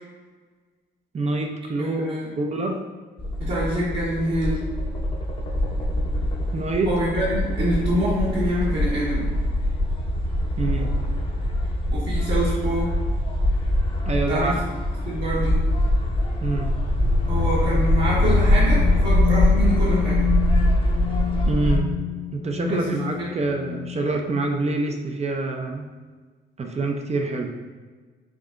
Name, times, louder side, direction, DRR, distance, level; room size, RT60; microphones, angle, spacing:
voice 1, 1.1-2.0 2.4-2.8 6.5-7.0 10.6-11.0 14.1-14.6 16.4-16.8 21.5-21.9 22.3-25.9 26.6-27.5, right 2 dB, 35° right, 2 dB, 0.5 m, -26 dB
voice 2, 1.8-2.2 3.4-4.6 6.8-9.3 11.9-12.9 14.3-14.5 15.1-15.6 17.3-20.2 22.7-22.8 23.2-23.3, right 1 dB, 65° right, -10 dB, 1.3 m, -25 dB
sound 1, 3.2-21.8, left 1 dB, 25° left, 0.7 m, -23 dB
sound 2, 16.9-24.6, left 10 dB, 70° left, 0.5 m, -29 dB
5.9 x 2.7 x 2.5 m, 1.4 s
cardioid pair, 90°, 20 cm